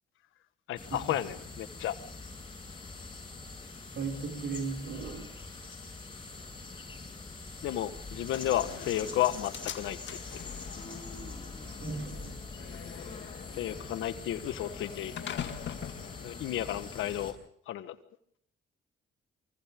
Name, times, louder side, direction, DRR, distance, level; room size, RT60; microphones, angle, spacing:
voice 1, 0.7-1.9 7.6-10.4 13.5-15.2 16.2-17.4 17.7-18.0, left 12 dB, 85° left, 11 dB, 1.4 m, -32 dB
sound 1, 0.8-17.3, left 3 dB, 25° left, 7.4 m, -44 dB
voice 2, 4.0-5.3 11.8-12.4, right 4 dB, 65° right, 4 dB, 6.2 m, -36 dB
Slam, 8.3-17.3, left 9 dB, 65° left, 2.1 m, -43 dB
28.0 x 25.0 x 3.7 m, 0.67 s
cardioid pair, 90°, 20 cm